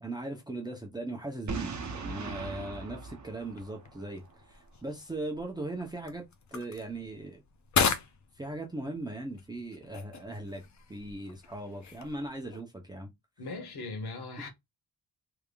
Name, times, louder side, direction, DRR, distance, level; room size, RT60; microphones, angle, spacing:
voice 1, 0.0-6.3 6.5-7.4 8.3-10.6 10.9-13.1, right 2 dB, 10° right, 0.7 m, -39 dB
Boom, 1.5-4.3, right 4 dB, 45° right, 0.8 m, -39 dB
sound 1, 3.4-12.6, left 6 dB, 45° left, 0.6 m, -37 dB
voice 2, 13.4-14.5, left 3 dB, 75° left, 1.5 m, -39 dB
3.5 x 3.4 x 2.3 m
wide cardioid pair, 155°, 40 cm